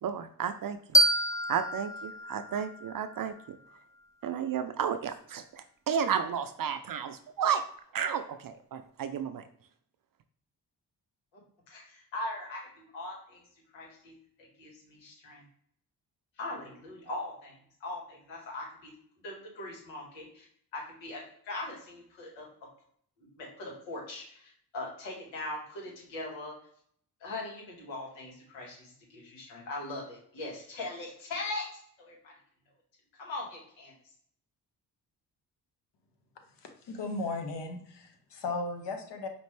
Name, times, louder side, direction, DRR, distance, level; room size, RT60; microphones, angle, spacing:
voice 1, 0.0-0.8 1.5-3.6 4.2-7.6 7.9-9.4, right 8 dB, 50° right, 9 dB, 0.5 m, -32 dB
sound 1, 0.9-3.7, right 1 dB, 5° left, 0.6 m, -28 dB
voice 2, 11.7-13.4 13.7-14.1 14.4-15.4 16.4-18.9 19.2-20.4 20.7-22.5 23.4-26.5 27.2-32.3 33.2-33.9, left 2 dB, 85° left, -2 dB, 1.6 m, -40 dB
voice 3, 36.9-39.3, left 3 dB, 65° left, 4 dB, 1.2 m, -36 dB
5.1 x 2.5 x 3.2 m, 0.63 s
supercardioid pair, 45°, 44 cm